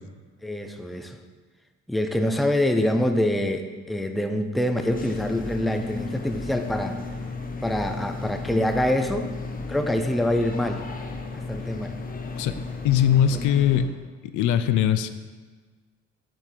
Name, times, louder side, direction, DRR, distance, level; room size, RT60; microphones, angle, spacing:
voice 1, 0.4-1.2 1.9-7.0 7.6-9.3 9.7-10.8 11.5-12.0 13.3-13.4, left 1 dB, ahead, 6 dB, 0.4 m, -25 dB
sound 1, 4.8-13.8, left 3 dB, 30° left, 0.8 m, -34 dB
voice 2, 12.8-13.9 14.2-15.1, left 10 dB, 85° left, 11 dB, 0.5 m, -21 dB
6.1 x 4.4 x 5.0 m, 1.4 s
cardioid pair, 90°, 30 cm